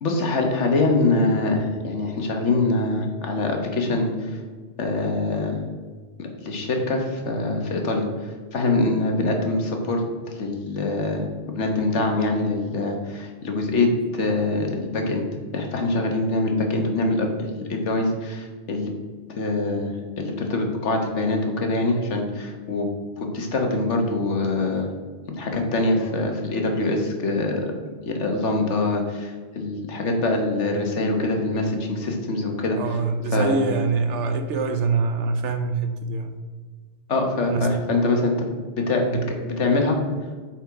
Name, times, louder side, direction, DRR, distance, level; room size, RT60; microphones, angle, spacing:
voice 1, 0.0-4.4 4.8-5.6 6.2-10.0 10.4-11.3 11.5-15.2 15.5-18.9 19.3-22.9 23.2-24.9 25.4-27.7 28.0-33.0 33.3-33.6 37.1-38.5 38.8-40.0, left 2 dB, 90° left, 3 dB, 1.5 m, -24 dB
voice 2, 32.8-36.4 37.5-37.8 39.0-39.2, right 4 dB, 85° right, 7 dB, 1.1 m, -24 dB
8.4 x 4.5 x 4.7 m, 1.5 s
omnidirectional pair, 1.2 m